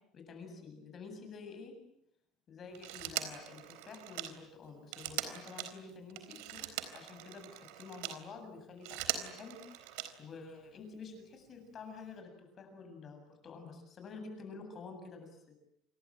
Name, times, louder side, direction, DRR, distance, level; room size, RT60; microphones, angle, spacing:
voice 1, 0.1-1.8 2.5-15.6, left 4 dB, 30° left, 5 dB, 7.9 m, -49 dB
Telephone, 2.8-8.2 8.7-10.4 11.7-11.8, right 13 dB, 85° right, 3.9 m, -41 dB
29.0 x 22.5 x 9.0 m, 0.77 s
cardioid pair, 165°, 0 cm